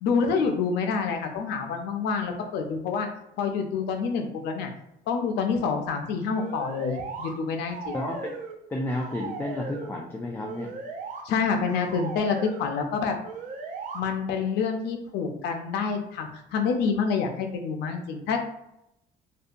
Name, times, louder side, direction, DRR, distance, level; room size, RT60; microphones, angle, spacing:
voice 1, 0.0-3.1 3.4-4.7 5.1-8.0 11.2-13.2 13.9-18.4, left 5 dB, 80° left, 4 dB, 0.5 m, -27 dB
sound 1, 6.3-7.3 7.7-8.6 8.9-9.9 10.4-11.2 11.7-12.7 13.2-14.0, right 5 dB, 50° right, 0.5 m, -37 dB
voice 2, 7.9-8.4 8.7-10.7, left 1 dB, 10° left, -1 dB, 0.3 m, -31 dB
2.7 x 2.2 x 2.5 m, 0.82 s
cardioid pair, 110°, 17 cm